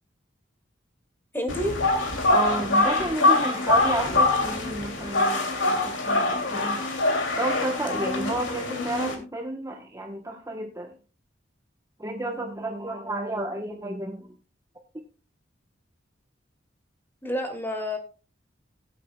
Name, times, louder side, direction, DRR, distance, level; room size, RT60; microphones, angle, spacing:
voice 1, 1.3-1.8 17.2-18.0, equal, 10° left, 4 dB, 2.2 m, -28 dB
sound 1, 1.5-9.1, left 2 dB, 80° left, 2.8 m, -24 dB
voice 2, 2.3-6.8 7.4-10.9 12.0-14.3, right 1 dB, 15° right, 2 dB, 1.1 m, -31 dB
18.5 x 8.4 x 2.3 m, 0.34 s
head